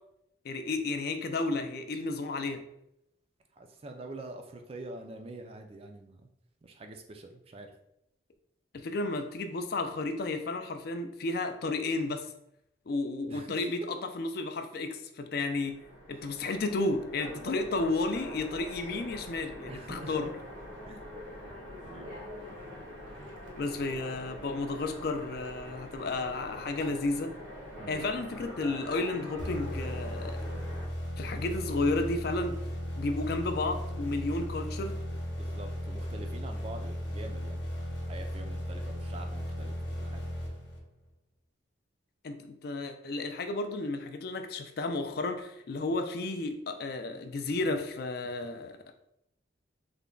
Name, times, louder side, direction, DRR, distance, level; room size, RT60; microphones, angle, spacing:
voice 1, 0.4-2.7 8.7-12.3 12.9-20.3 23.6-27.3 27.9-30.4 31.2-32.6 33.0-35.0 42.2-48.8, left 2 dB, 50° left, 7 dB, 0.3 m, -32 dB
voice 2, 3.5-6.2 6.6-7.7 13.3-13.7 16.1-16.3 17.3-17.8 19.7-20.3 20.9-21.1 21.8-22.2 27.8-28.1 35.4-37.6 38.0-40.2, right 2 dB, 30° right, 4 dB, 0.3 m, -45 dB
Train, 15.5-30.9, left 1 dB, 80° right, 0.8 m, -44 dB
sound 1, 29.4-41.1, equal, 70° left, 0.8 m, -36 dB
3.3 x 2.1 x 3.7 m, 0.78 s
head